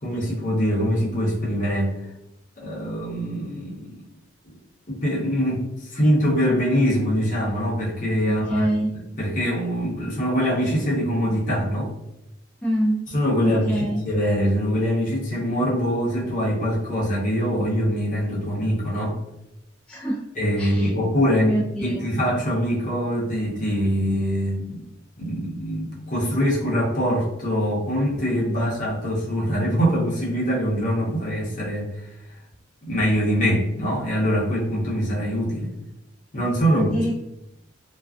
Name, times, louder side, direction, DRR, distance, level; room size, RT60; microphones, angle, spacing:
voice 1, 0.0-1.9 2.6-4.0 4.4-4.6 4.9-8.7 9.2-11.9 13.1-19.2 20.4-21.5 21.8-24.8 25.2-32.1 32.8-35.7 36.3-37.0, equal, 45° left, -5 dB, 0.8 m, -23 dB
voice 2, 8.2-8.9 12.6-13.0 13.4-14.0 19.9-20.2 20.6-20.9 21.3-22.0 36.7-37.1, right 1 dB, 5° left, -7 dB, 0.4 m, -25 dB
2.4 x 2.2 x 2.4 m, 0.86 s
head